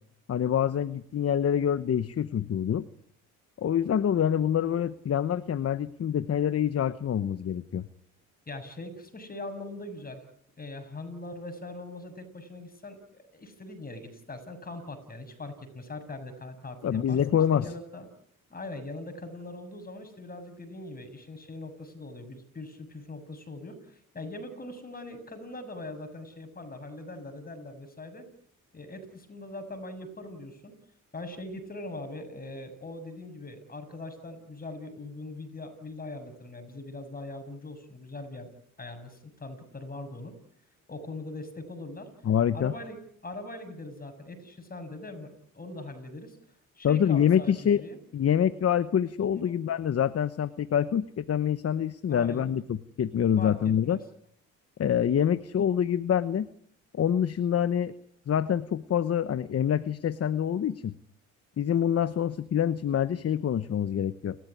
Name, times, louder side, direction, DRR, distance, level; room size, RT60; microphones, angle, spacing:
voice 1, 0.3-2.9 3.6-7.8 16.8-17.7 42.2-42.7 46.8-47.8 48.1-54.0 54.8-56.5 56.9-57.9 58.3-60.9 61.6-64.4, left 9 dB, 45° left, 14 dB, 1.0 m, -26 dB
voice 2, 8.5-10.2 10.6-18.1 18.5-28.3 28.7-30.7 31.1-38.5 38.8-40.3 40.9-42.1 42.5-43.0 43.2-46.4 46.8-48.0 49.3-49.6 52.1-52.5 53.4-54.0, left 2 dB, 25° left, 8 dB, 7.2 m, -41 dB
29.5 x 14.5 x 9.8 m, 0.68 s
cardioid pair, 85°, 33 cm